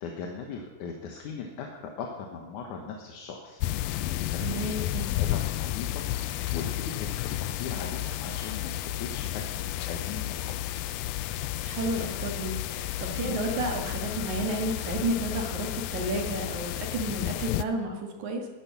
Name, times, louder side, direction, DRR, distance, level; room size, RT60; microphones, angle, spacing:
voice 1, 0.0-4.9 5.2-10.6 13.2-13.4, left 5 dB, 65° left, 1 dB, 2.6 m, -39 dB
sound 1, 3.6-17.6, left 14 dB, 85° left, 2.3 m, -32 dB
voice 2, 4.4-5.1 11.6-18.5, right 2 dB, 60° right, 2 dB, 3.2 m, -32 dB
13.5 x 11.0 x 7.1 m, 1.2 s
omnidirectional pair, 4.0 m